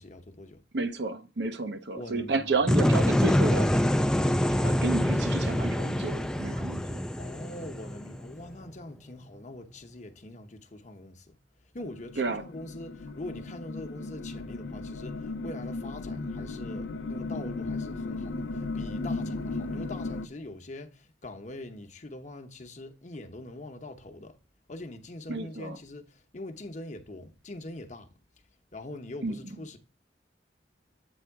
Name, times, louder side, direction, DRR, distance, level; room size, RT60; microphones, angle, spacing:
voice 1, 0.0-0.6 1.9-2.6 7.2-11.4 11.7-24.4 24.7-28.1 28.7-29.8, left 1 dB, 40° left, 0.9 m, -43 dB
voice 2, 0.7-3.7 4.6-7.0 12.2-12.4 25.3-25.8 29.2-29.3, right 3 dB, 70° right, 0.8 m, -31 dB
sound 1, 2.7-8.5, equal, 5° left, 0.3 m, -25 dB
sound 2, 11.8-20.3, left 3 dB, 80° left, 0.5 m, -36 dB
8.0 x 3.4 x 4.6 m
head